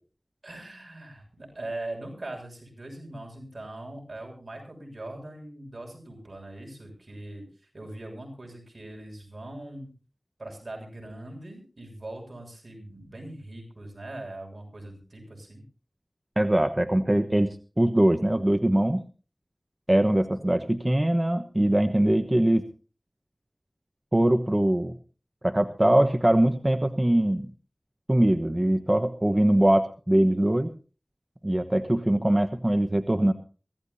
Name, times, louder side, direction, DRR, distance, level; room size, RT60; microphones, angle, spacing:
voice 1, 0.4-7.5 7.7-9.9 10.4-15.6, right 1 dB, 75° right, 2 dB, 7.0 m, -41 dB
voice 2, 16.4-19.0 19.9-22.7 24.1-24.9 25.4-27.5 28.1-30.7 31.4-33.3, right 1 dB, 25° right, 8 dB, 1.1 m, -22 dB
23.5 x 16.0 x 2.8 m, 0.36 s
wide cardioid pair, 55°, 0 cm